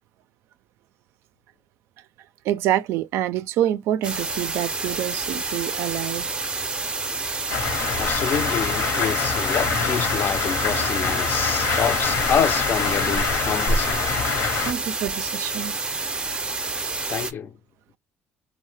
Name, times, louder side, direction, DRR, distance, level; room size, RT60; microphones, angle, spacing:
voice 1, 2.4-6.3 6.8-6.9 14.6-15.8, right 12 dB, 75° right, 0.4 m, -26 dB
sound 1, 4.0-17.3, right 3 dB, 20° right, 0.5 m, -29 dB
sound 2, 7.5-14.7, left 5 dB, 75° left, 0.9 m, -25 dB
voice 2, 7.9-14.1 17.1-17.5, left 7 dB, 50° left, 0.4 m, -27 dB
2.7 x 2.0 x 3.2 m
supercardioid pair, 90°, 4 cm